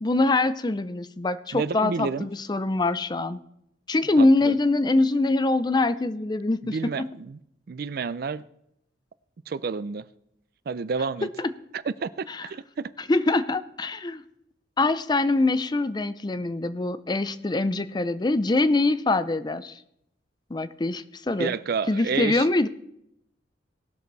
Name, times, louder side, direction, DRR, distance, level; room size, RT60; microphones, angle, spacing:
voice 1, 0.0-3.4 3.9-7.1 11.2-11.5 12.3-12.4 13.1-14.2 14.8-19.8 20.5-21.5 21.9-22.7, left 2 dB, 25° left, 0.4 m, -24 dB
voice 2, 1.5-2.3 4.2-4.6 6.7-7.4 7.7-8.4 9.5-10.1 10.7-11.3 11.7-12.9 21.4-22.5, right 5 dB, 55° right, 0.4 m, -30 dB
18.5 x 6.4 x 4.1 m
head